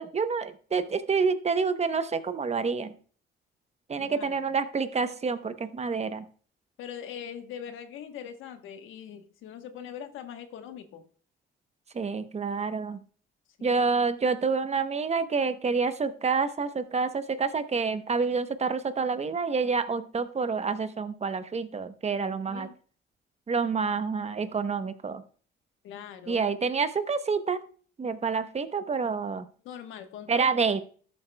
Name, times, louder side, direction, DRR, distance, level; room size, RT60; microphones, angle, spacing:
voice 1, 0.0-2.9 3.9-6.3 11.9-13.0 13.6-22.7 23.5-25.2 26.3-27.6 28.0-29.5 30.3-30.8, right 5 dB, 35° right, 11 dB, 0.8 m, -28 dB
voice 2, 4.0-4.5 6.8-11.0 13.6-13.9 22.5-22.8 25.8-26.5 29.6-30.8, left 9 dB, 90° left, 7 dB, 1.1 m, -42 dB
13.0 x 7.6 x 2.2 m, 0.43 s
cardioid pair, 90°, 20 cm